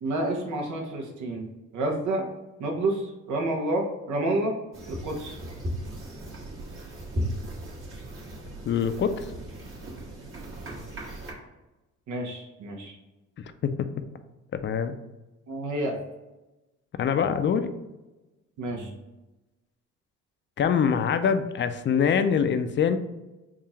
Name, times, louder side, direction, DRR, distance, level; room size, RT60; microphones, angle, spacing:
voice 1, 0.0-1.5 1.7-2.3 2.6-4.6 4.9-5.4 12.1-13.0 15.5-16.0 18.6-19.0, right 1 dB, 75° right, 0 dB, 1.0 m, -29 dB
sound 1, 4.7-11.3, equal, 45° right, 1.4 m, -36 dB
voice 2, 8.7-9.3 13.6-13.7 14.6-15.0 17.0-17.7 20.6-23.0, left 7 dB, 40° left, 10 dB, 0.4 m, -24 dB
3.7 x 2.4 x 4.2 m, 1.1 s
cardioid pair, 90°, 30 cm